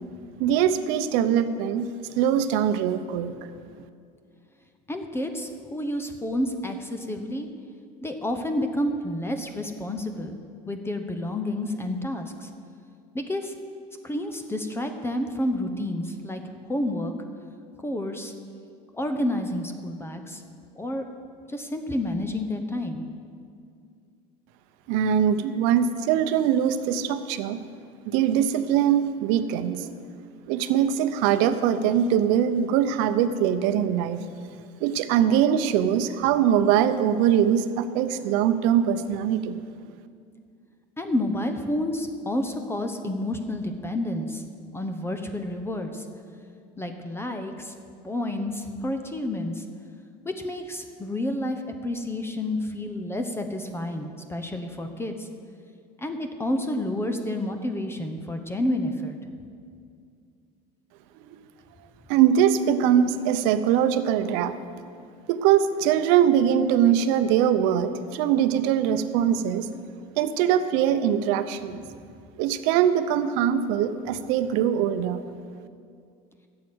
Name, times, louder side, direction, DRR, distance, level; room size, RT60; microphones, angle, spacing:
voice 1, 0.4-1.9 2.2-3.3 24.9-27.6 28.1-29.8 30.5-34.2 34.8-39.6 62.1-64.6 65.3-69.7 70.2-71.8 72.4-75.2, right 9 dB, 70° right, 11 dB, 0.8 m, -22 dB
voice 2, 4.9-7.5 8.0-10.4 10.7-12.5 13.1-13.5 14.0-16.4 16.7-17.1 17.8-18.3 18.9-20.4 20.7-21.0 21.5-23.0 41.0-44.4 44.7-46.1 46.8-47.7 48.0-49.6 50.2-55.3 56.0-59.2, left 1 dB, 10° left, 6 dB, 0.9 m, -29 dB
12.0 x 7.7 x 7.9 m, 2.3 s
supercardioid pair, 110°, 20 cm